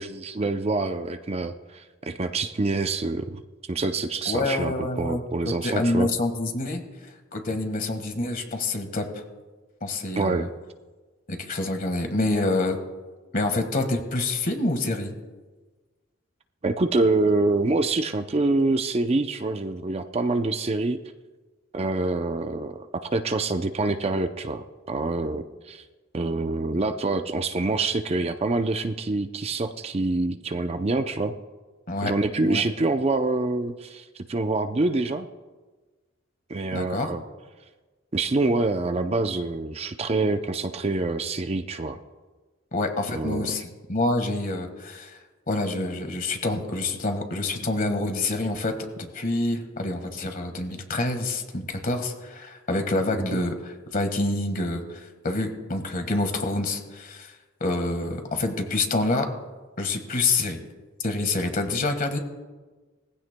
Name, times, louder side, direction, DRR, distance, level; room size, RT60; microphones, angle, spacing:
voice 1, 0.0-3.4 3.7-6.1 10.2-10.5 16.6-21.0 21.7-22.9 23.1-25.8 26.1-31.4 32.0-35.3 36.5-37.2 38.1-42.0 43.1-43.5, right 3 dB, 30° right, 8 dB, 0.5 m, -26 dB
voice 2, 4.3-5.2 5.6-6.8 7.3-9.1 9.8-10.5 11.3-12.8 13.3-15.1 31.9-32.1 32.4-32.6 36.7-37.1 42.7-43.6 43.9-45.2 45.5-53.5 53.9-57.3 57.6-59.3 59.8-60.6 61.0-62.2, left 2 dB, 45° left, 6 dB, 1.5 m, -27 dB
20.5 x 15.5 x 2.2 m, 1.3 s
head